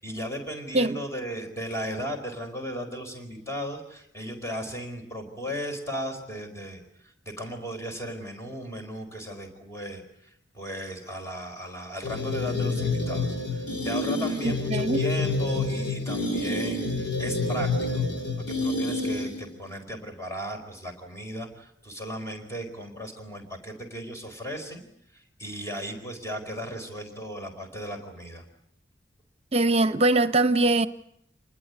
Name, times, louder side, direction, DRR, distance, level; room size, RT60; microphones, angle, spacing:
voice 1, 0.0-18.1 18.4-24.9 25.1-28.4, equal, 15° left, 4.6 m, -36 dB
sound 1, 12.0-19.5, left 2 dB, 70° left, 4.7 m, -28 dB
voice 2, 14.4-15.0 29.5-30.9, right 2 dB, 35° right, 1.1 m, -22 dB
29.0 x 20.5 x 9.7 m
head